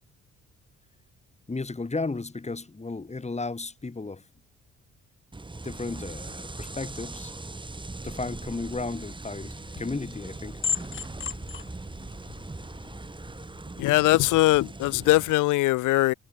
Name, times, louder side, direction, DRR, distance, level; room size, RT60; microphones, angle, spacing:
voice 1, 1.5-4.2 5.6-7.3 8.0-10.6, left 3 dB, 20° left, 6.4 m, -34 dB
sound 1, 5.3-15.3, right 2 dB, 15° right, 3.1 m, -40 dB
sound 2, 9.4-13.6, left 6 dB, 40° left, 3.3 m, -37 dB
voice 2, 13.8-16.1, left 18 dB, 90° left, 0.8 m, -21 dB
cardioid pair, 90°, 30 cm